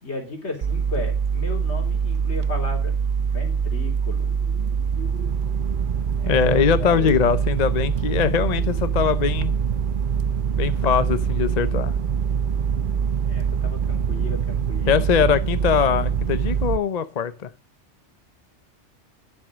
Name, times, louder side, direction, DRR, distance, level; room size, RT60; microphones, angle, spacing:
voice 1, 0.0-4.3 6.2-7.3 13.2-15.0, left 2 dB, 70° left, 3.5 m, -35 dB
sound 1, 0.6-16.8, right 6 dB, 55° right, 0.7 m, -24 dB
voice 2, 6.3-9.5 10.6-11.9 14.9-17.5, left 7 dB, 45° left, 0.6 m, -21 dB
10.5 x 7.2 x 6.1 m
omnidirectional pair, 1.2 m